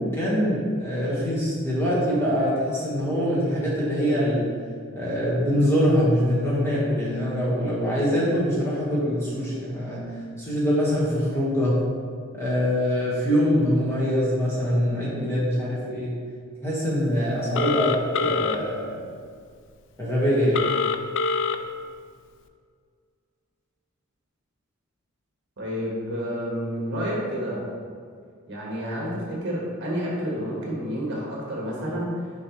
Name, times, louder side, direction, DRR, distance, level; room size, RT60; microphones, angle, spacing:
voice 1, 0.0-4.5 4.9-10.0 10.4-11.8 12.3-16.2 16.6-19.1 20.0-20.7, equal, 10° left, -7 dB, 1.4 m, -24 dB
Telephone, 17.5-18.6 20.5-21.6, left 4 dB, 60° left, 0.3 m, -24 dB
voice 2, 25.6-27.7 28.5-32.3, equal, 55° right, -4 dB, 1.4 m, -29 dB
6.5 x 5.1 x 3.1 m, 2.1 s
head